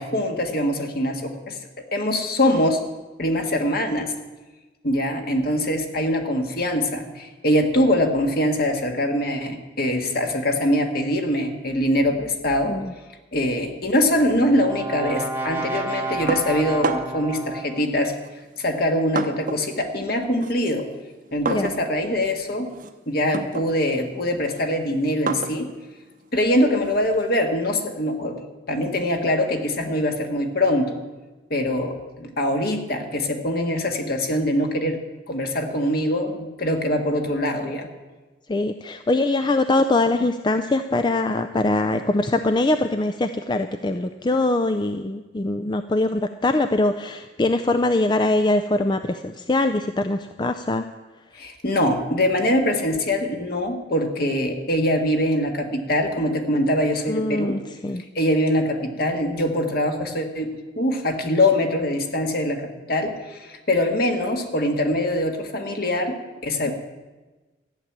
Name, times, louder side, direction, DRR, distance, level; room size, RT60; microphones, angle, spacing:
voice 1, 0.0-1.6 1.9-2.8 3.2-4.1 4.8-12.8 13.3-18.1 18.6-20.9 21.3-22.7 23.1-25.7 26.3-28.4 28.7-31.0 31.5-35.0 35.3-37.9 51.3-57.6 58.1-66.2 66.4-66.7, left 1 dB, 55° left, 4 dB, 1.7 m, -23 dB
Brass instrument, 13.8-18.0, right 2 dB, 10° right, 1.0 m, -31 dB
sound 1, 16.3-17.3 18.2-19.7 20.1-27.4, right 3 dB, 45° right, 0.8 m, -32 dB
voice 2, 38.5-50.9 57.1-58.0, left 2 dB, 25° left, 8 dB, 0.4 m, -22 dB
14.0 x 7.4 x 9.9 m, 1.2 s
head